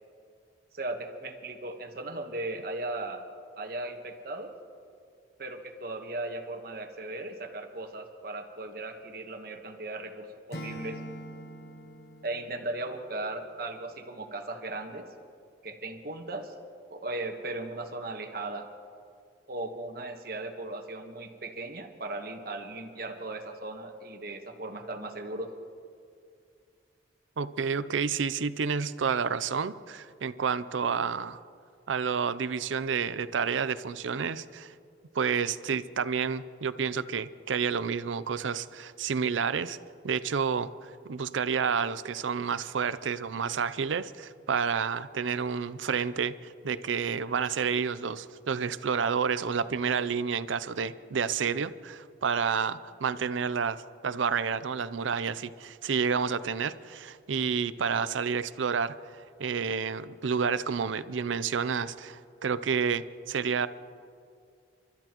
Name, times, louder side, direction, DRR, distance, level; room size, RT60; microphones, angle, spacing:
voice 1, 0.7-3.2 3.6-4.5 5.4-11.0 12.2-15.1 15.6-16.5 16.9-18.7 19.5-25.5, right 2 dB, 50° right, 5 dB, 1.3 m, -37 dB
Acoustic guitar / Strum, 10.5-13.6, equal, 55° left, 0.9 m, -43 dB
voice 2, 27.4-31.4 31.9-34.7 35.1-39.8 40.0-59.0 59.4-63.7, right 6 dB, 85° right, 15 dB, 0.5 m, -30 dB
29.5 x 13.0 x 3.0 m, 2.3 s
head